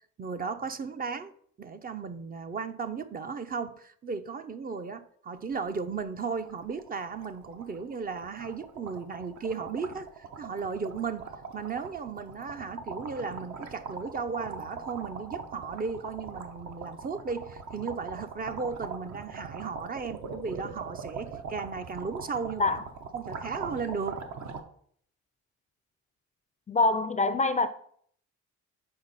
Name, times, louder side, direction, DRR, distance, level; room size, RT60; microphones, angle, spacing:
voice 1, 0.2-1.3 1.6-22.8 23.1-24.3, right 5 dB, 30° right, 0.5 m, -35 dB
sound 1, 5.5-5.7 6.0-6.1 6.4-24.6, right 5 dB, 65° right, 0.9 m, -41 dB
voice 2, 26.7-27.7, left 3 dB, 25° left, 0.4 m, -25 dB
6.9 x 4.3 x 4.0 m
cardioid pair, 90°, 30 cm